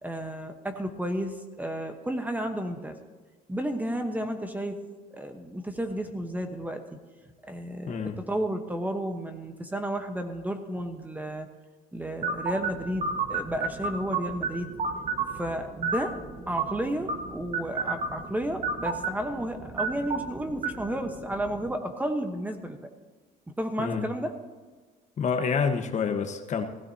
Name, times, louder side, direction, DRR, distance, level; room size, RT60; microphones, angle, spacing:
voice 1, 0.0-3.0 3.5-4.8 5.1-7.0 7.5-8.0 8.3-11.5 11.9-14.7 15.3-16.2 16.5-22.9 23.6-24.3, right 1 dB, 10° right, 6 dB, 1.1 m, -32 dB
sound 1, 12.2-21.7, right 4 dB, 40° right, 1.3 m, -33 dB
voice 2, 25.2-26.6, left 6 dB, 45° left, 6 dB, 1.3 m, -27 dB
16.0 x 15.5 x 2.8 m, 1.4 s
cardioid pair, 110°, 17 cm